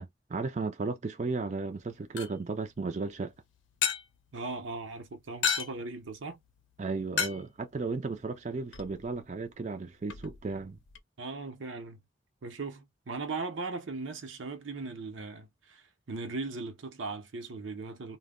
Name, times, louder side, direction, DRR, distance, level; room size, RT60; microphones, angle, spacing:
voice 1, 0.0-3.3 6.8-10.8, right 3 dB, 35° right, 0.4 m, -34 dB
sound 1, 1.7-11.0, left 7 dB, 80° left, 0.6 m, -38 dB
voice 2, 4.3-6.4 11.2-12.0 12.4-18.2, right 3 dB, 80° right, 0.7 m, -38 dB
2.2 x 2.1 x 3.5 m
head